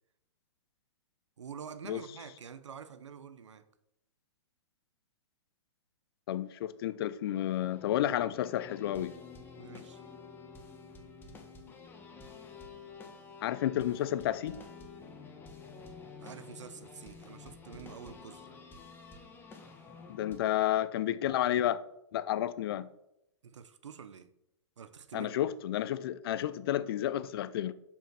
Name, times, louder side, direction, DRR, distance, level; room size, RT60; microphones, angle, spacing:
voice 1, 1.4-3.7 9.6-10.0 16.2-18.5 23.4-24.3 24.8-25.4, right 7 dB, 80° right, 0.8 m, -47 dB
voice 2, 6.3-9.1 13.4-14.6 20.1-21.8 22.1-22.9 25.1-27.7, left 12 dB, 50° left, 0.6 m, -31 dB
sound 1, 7.3-20.4, left 4 dB, 15° left, 1.4 m, -50 dB
7.1 x 5.6 x 6.0 m
hypercardioid pair, 125°, 15 cm